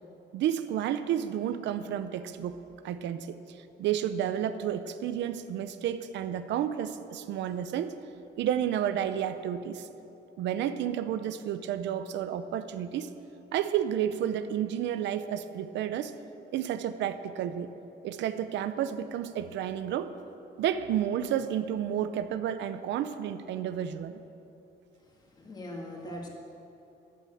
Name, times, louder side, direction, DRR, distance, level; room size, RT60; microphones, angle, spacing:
voice 1, 0.3-2.6 2.8-3.4 3.8-7.9 8.4-9.9 10.4-13.1 13.5-16.1 16.5-17.7 18.0-20.1 20.6-24.2 26.1-26.2, right 10 dB, 75° right, 11 dB, 0.7 m, -31 dB
voice 2, 25.0-26.3, left 2 dB, 20° left, -1 dB, 2.3 m, -42 dB
14.0 x 9.2 x 7.8 m, 2.9 s
cardioid pair, 160°, 19 cm